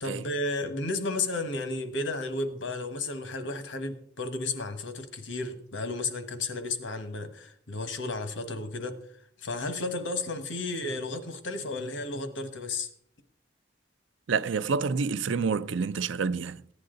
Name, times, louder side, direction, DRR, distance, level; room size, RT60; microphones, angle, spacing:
voice 1, 0.0-9.0 9.4-12.9, left 2 dB, 80° left, 1.4 m, -33 dB
voice 2, 14.3-16.7, right 5 dB, 80° right, 0.5 m, -28 dB
15.0 x 9.6 x 3.9 m
head